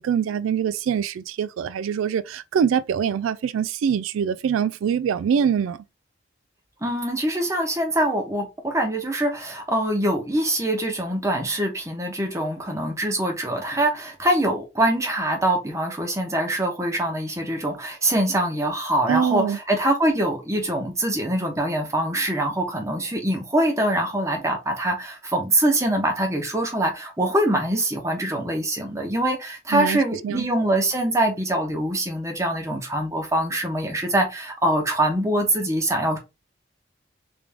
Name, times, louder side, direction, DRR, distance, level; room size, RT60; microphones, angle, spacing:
voice 1, 0.0-5.8 19.1-19.6 29.7-30.5, right 7 dB, 85° right, 0.3 m, -24 dB
voice 2, 6.8-36.2, right 1 dB, 15° right, 1.0 m, -24 dB
3.5 x 3.4 x 3.4 m
head